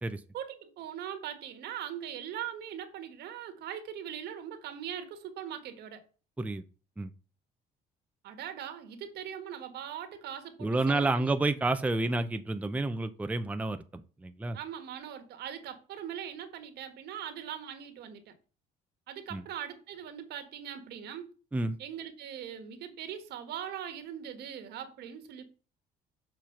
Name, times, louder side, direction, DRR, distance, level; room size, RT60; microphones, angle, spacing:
voice 1, 0.3-6.0 8.2-11.3 14.5-18.4 19.1-21.3 21.8-25.4, right 9 dB, 75° right, 1.6 m, -41 dB
voice 2, 10.6-14.6 19.3-19.4 21.5-21.8, right 2 dB, 10° right, 0.6 m, -30 dB
7.0 x 4.5 x 5.8 m
cardioid pair, 110°, 17 cm